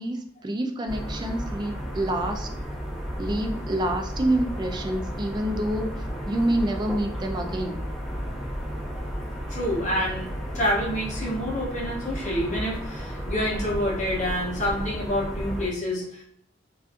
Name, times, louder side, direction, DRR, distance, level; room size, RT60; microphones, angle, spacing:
voice 1, 0.0-2.5 3.2-7.8, right 1 dB, 25° right, 3 dB, 0.3 m, -27 dB
sound 1, 0.9-15.7, equal, 5° right, 1.0 m, -33 dB
voice 2, 9.5-10.3 10.5-16.2, equal, 40° left, -5 dB, 0.8 m, -27 dB
2.6 x 2.3 x 2.4 m, 0.70 s
head